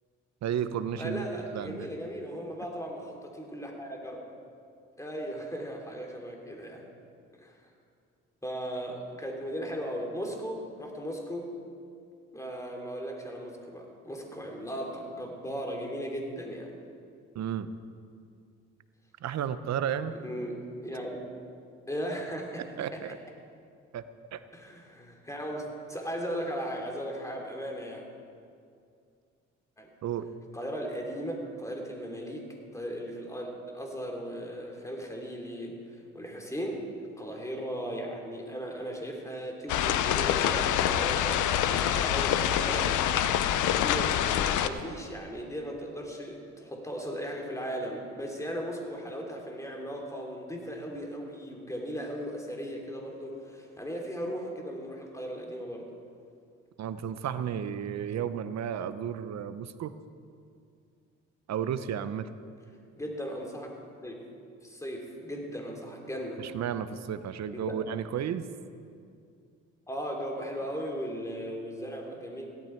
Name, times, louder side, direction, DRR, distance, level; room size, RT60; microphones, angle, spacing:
voice 1, 0.4-1.3 1.5-1.9 17.3-17.7 19.2-20.1 22.8-23.2 23.9-24.0 24.3-24.4 30.0-30.3 56.8-59.9 61.5-62.3 66.4-68.5, right 9 dB, 65° right, 12 dB, 0.8 m, -33 dB
voice 2, 1.0-4.3 5.0-6.9 7.4-7.6 8.4-11.5 12.3-16.8 20.1-21.2 21.9-22.6 22.9-23.1 24.5-28.0 29.8-29.9 30.5-36.8 37.2-42.9 43.7-55.9 63.0-63.7 64.0-64.2 64.6-66.4 67.5-67.8 69.9-72.5, equal, 10° left, 0 dB, 3.1 m, -37 dB
sound 1, 39.7-44.7, left 10 dB, 80° left, 0.7 m, -26 dB
16.5 x 12.5 x 4.5 m, 2.4 s
supercardioid pair, 70°, 30 cm